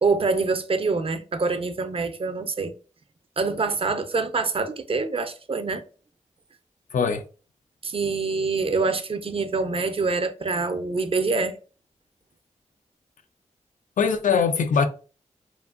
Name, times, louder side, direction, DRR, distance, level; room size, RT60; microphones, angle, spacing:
voice 1, 0.0-2.7 3.4-5.8 7.8-11.6, right 4 dB, 45° right, 0.4 m, -25 dB
voice 2, 6.9-7.2 14.0-14.9, left 6 dB, 80° left, 0.4 m, -21 dB
2.8 x 2.5 x 2.4 m
wide cardioid pair, 60°, 13 cm